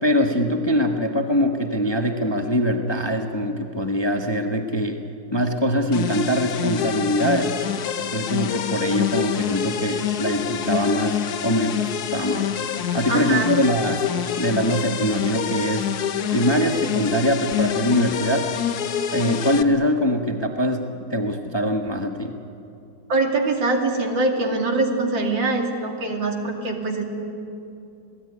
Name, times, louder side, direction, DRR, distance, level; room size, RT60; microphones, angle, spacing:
voice 1, 0.0-5.0 5.3-7.6 8.1-12.5 12.9-15.9 16.3-18.5 19.1-22.4, equal, 15° left, 4 dB, 1.0 m, -23 dB
sound 1, 5.9-19.6, left 9 dB, 60° left, 1.4 m, -26 dB
voice 2, 13.1-13.5 23.1-27.0, right 3 dB, 80° right, 2 dB, 3.3 m, -23 dB
27.5 x 18.0 x 9.7 m, 2.8 s
omnidirectional pair, 2.0 m